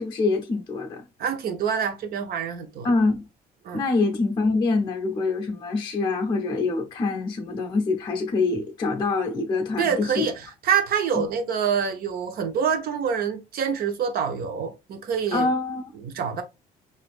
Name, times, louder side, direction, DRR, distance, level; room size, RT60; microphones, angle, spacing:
voice 1, 0.0-1.0 2.8-3.2 3.7-10.3 11.1-11.2 15.3-15.8, left 3 dB, 25° left, 0.6 m, -25 dB
voice 2, 1.2-2.9 3.6-3.8 9.8-15.5 16.0-16.4, right 7 dB, 60° right, 0.7 m, -26 dB
4.1 x 2.5 x 2.3 m
cardioid pair, 110°, 17 cm